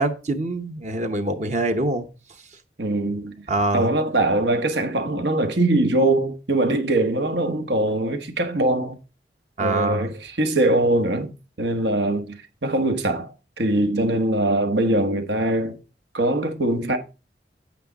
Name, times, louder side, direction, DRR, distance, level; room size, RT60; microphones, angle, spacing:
voice 1, 0.0-2.1 3.5-3.9 9.6-10.1 13.9-14.0, right 2 dB, 40° right, 0.9 m, -24 dB
voice 2, 2.8-3.4 3.7-9.0 9.6-11.3 11.6-13.3 13.6-15.8 16.1-17.0, right 2 dB, 85° right, 1.4 m, -22 dB
8.5 x 8.4 x 4.1 m
head